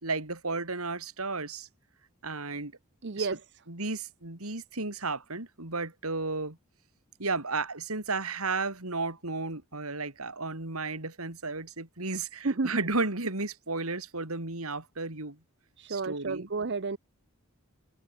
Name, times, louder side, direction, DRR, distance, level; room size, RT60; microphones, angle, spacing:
voice 1, 0.0-1.7 2.2-2.7 3.2-3.4 3.7-6.6 7.2-15.4 15.9-16.5, right 3 dB, 75° right, 3.8 m, -33 dB
voice 2, 3.0-3.4 12.4-12.8 15.8-17.0, right 3 dB, 55° right, 0.8 m, -31 dB
head